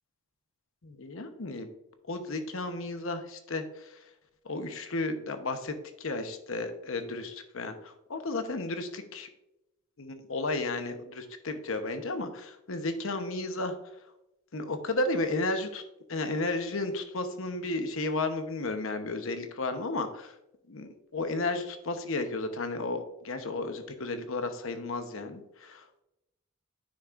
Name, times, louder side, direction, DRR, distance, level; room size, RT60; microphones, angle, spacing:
voice 1, 0.8-1.7 2.1-3.6 4.5-5.7 6.0-9.3 10.0-13.7 14.5-15.8 16.1-20.3 20.7-26.0, left 2 dB, 65° left, 8 dB, 0.9 m, -33 dB
9.9 x 6.1 x 2.5 m, 0.90 s
head